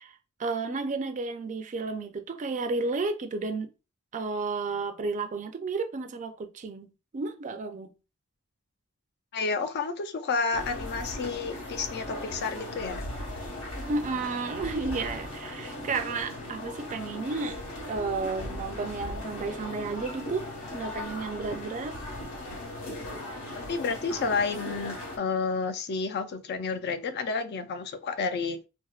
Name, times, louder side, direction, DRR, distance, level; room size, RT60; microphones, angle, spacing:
voice 1, 0.0-3.7 4.1-6.9 7.1-7.9 13.9-17.6 17.9-22.0, right 3 dB, 35° right, 0.4 m, -32 dB
voice 2, 9.3-13.0 23.7-28.6, left 4 dB, 50° left, 0.4 m, -30 dB
sound 1, 10.5-25.2, left 1 dB, 80° left, 1.3 m, -38 dB
Guitar, 13.9-17.7 18.4-23.1, equal, 30° left, 1.0 m, -54 dB
4.3 x 2.0 x 2.3 m
head